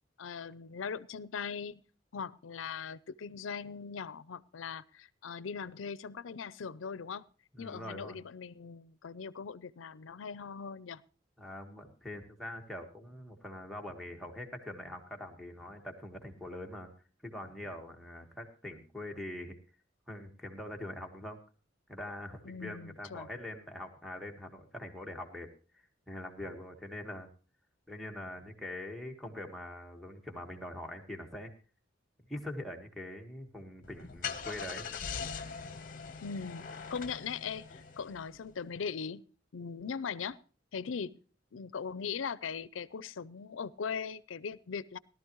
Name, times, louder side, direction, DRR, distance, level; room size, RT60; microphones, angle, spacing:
voice 1, 0.2-1.8 2.1-7.2 7.6-11.0 22.4-23.3 36.2-39.2 39.5-40.4 40.7-41.2 41.5-45.0, left 6 dB, 85° left, 19 dB, 0.5 m, -40 dB
voice 2, 7.5-8.2 11.4-16.9 17.2-19.5 20.1-21.4 21.9-27.3 27.9-31.5 32.3-34.9, left 1 dB, ahead, 0 dB, 1.6 m, -43 dB
Car / Engine starting, 33.8-38.5, left 6 dB, 45° left, 1.0 m, -42 dB
18.0 x 12.5 x 3.1 m, 0.37 s
head